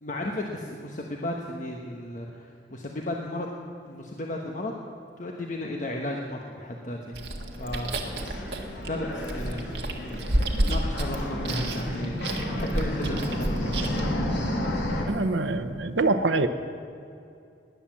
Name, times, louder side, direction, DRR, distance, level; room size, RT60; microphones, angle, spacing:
voice 1, 0.0-3.5 3.8-4.8 5.2-7.2 7.6-7.9 8.8-10.3 10.6-14.1, left 1 dB, 45° left, 1 dB, 1.2 m, -34 dB
Chewing mastication, 7.1-14.1, right 1 dB, 65° right, 1.8 m, -31 dB
sound 1, 7.5-15.0, left 1 dB, 80° left, 2.5 m, -32 dB
voice 2, 15.0-16.5, right 3 dB, 85° right, 8 dB, 0.9 m, -25 dB
19.5 x 9.8 x 7.4 m, 2.5 s
head